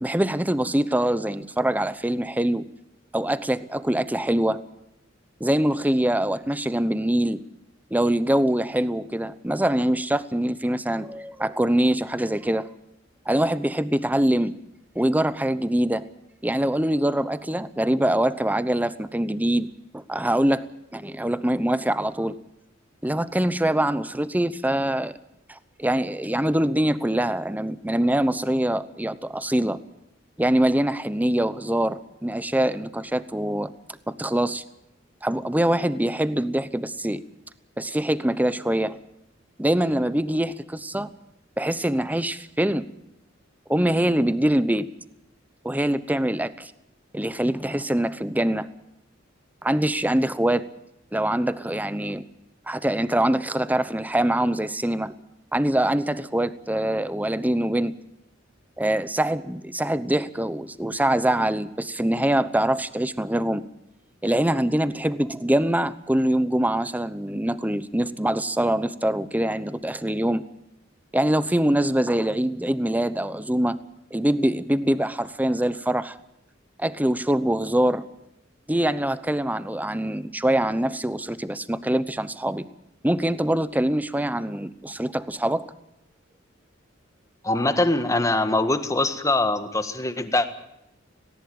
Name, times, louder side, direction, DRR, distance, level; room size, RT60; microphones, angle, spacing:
voice 1, 0.0-2.6 3.1-4.6 5.4-7.4 7.9-12.7 13.3-14.5 14.9-16.1 16.4-19.7 19.9-20.7 20.9-22.4 23.0-25.2 25.5-29.8 30.4-33.7 34.1-34.6 35.2-37.2 37.8-39.0 39.6-41.1 41.6-42.8 43.7-44.9 45.6-46.7 47.1-48.7 49.6-50.6 51.1-52.2 52.7-55.1 55.5-57.9 58.8-63.6 64.2-70.4 71.1-73.8 74.1-76.2 76.8-78.0 78.7-82.6 83.0-85.7, right 1 dB, 10° right, 15 dB, 0.9 m, -24 dB
voice 2, 87.4-90.5, left 2 dB, 15° left, 10 dB, 1.6 m, -23 dB
18.5 x 18.0 x 8.8 m, 0.83 s
head